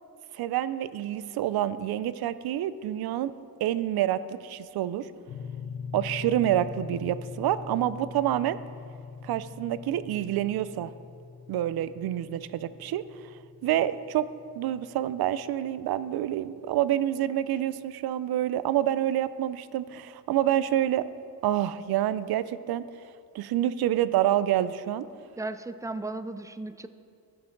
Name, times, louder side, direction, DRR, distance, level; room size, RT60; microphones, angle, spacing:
voice 1, 0.3-3.3 3.6-5.1 5.9-8.6 9.2-10.9 11.5-13.0 13.6-14.3 14.6-21.1 21.4-22.8 23.3-25.1, right 12 dB, 70° right, 15 dB, 0.5 m, -27 dB
sound 1, 5.3-15.4, left 5 dB, 35° left, 0.8 m, -42 dB
voice 2, 25.4-26.9, right 2 dB, 10° right, 11 dB, 0.3 m, -35 dB
15.0 x 6.0 x 3.8 m, 2.3 s
cardioid pair, 100°, 39 cm